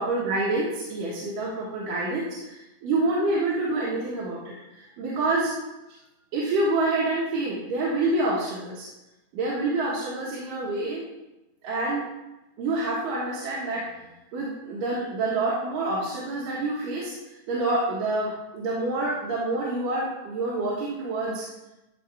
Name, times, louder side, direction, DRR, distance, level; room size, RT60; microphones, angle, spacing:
voice 1, 0.0-5.5 6.3-8.9 9.3-11.0 11.6-12.1 12.6-14.0 14.3-17.1 17.5-21.5, right 2 dB, 85° right, -7 dB, 3.1 m, -27 dB
12.5 x 5.0 x 3.4 m, 0.97 s
omnidirectional pair, 3.8 m